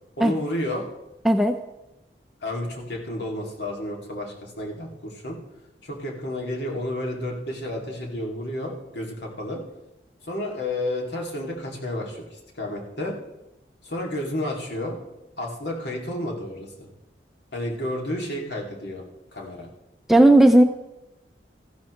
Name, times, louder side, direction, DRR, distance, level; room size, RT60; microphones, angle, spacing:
voice 1, 0.2-0.8 2.4-5.4 5.8-9.6 10.2-13.1 13.8-15.0 15.4-16.9 17.5-19.0 19.3-19.7, left 1 dB, 75° left, -1 dB, 2.6 m, -31 dB
voice 2, 1.2-1.6 20.1-20.6, right 1 dB, ahead, 5 dB, 0.5 m, -14 dB
14.5 x 11.5 x 3.2 m, 0.95 s
head